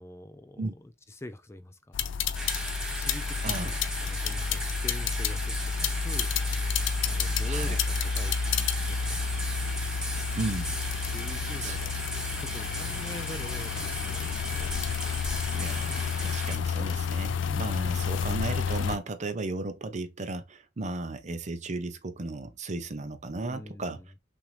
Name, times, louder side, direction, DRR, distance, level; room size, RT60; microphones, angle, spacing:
voice 1, 0.0-2.0 2.6-6.3 7.1-8.4 8.9-9.2 11.1-11.8 12.4-14.9 23.5-24.0, left 1 dB, 15° left, 0.4 m, -44 dB
sound 1, 1.9-19.0, left 6 dB, 75° left, 0.4 m, -30 dB
sound 2, 2.3-16.6, right 1 dB, 5° right, 0.9 m, -37 dB
voice 2, 3.4-3.8 7.4-7.8 10.3-10.8 11.6-11.8 15.5-24.0, right 2 dB, 40° right, 0.6 m, -35 dB
6.0 x 2.6 x 3.2 m
head